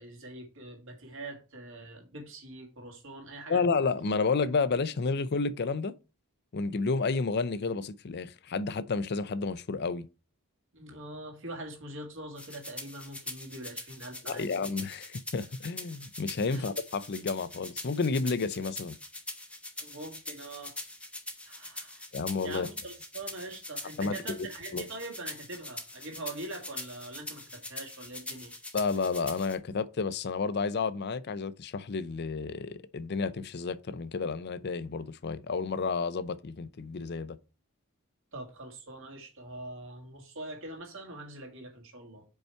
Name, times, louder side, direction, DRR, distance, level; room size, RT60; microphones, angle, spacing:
voice 1, 0.0-3.6 10.7-14.5 16.5-16.7 19.8-20.8 21.4-22.1 22.4-28.5 38.3-42.2, right 2 dB, 60° right, 2.1 m, -43 dB
voice 2, 3.5-5.9 6.5-10.1 14.3-19.0 22.1-22.7 24.0-24.4 24.7-24.9 28.7-37.4, left 4 dB, 50° left, 0.5 m, -31 dB
sound 1, 12.4-29.5, left 2 dB, 5° left, 1.0 m, -43 dB
5.3 x 4.8 x 4.4 m
head